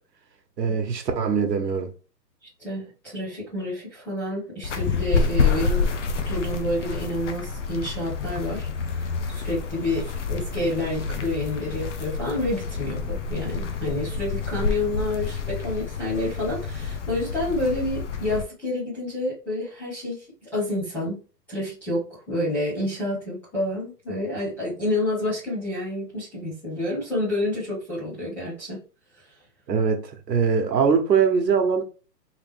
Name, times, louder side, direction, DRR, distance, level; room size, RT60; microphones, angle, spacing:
voice 1, 0.6-1.9 29.7-31.8, right 6 dB, 75° right, 1.3 m, -22 dB
voice 2, 2.6-5.9 6.2-8.7 8.9-20.2 20.5-21.2 21.5-28.8, left 1 dB, 5° left, 0.6 m, -29 dB
sound 1, 4.6-18.4, left 5 dB, 45° left, 0.6 m, -28 dB
3.5 x 3.0 x 3.5 m
hypercardioid pair, 155°, 50 cm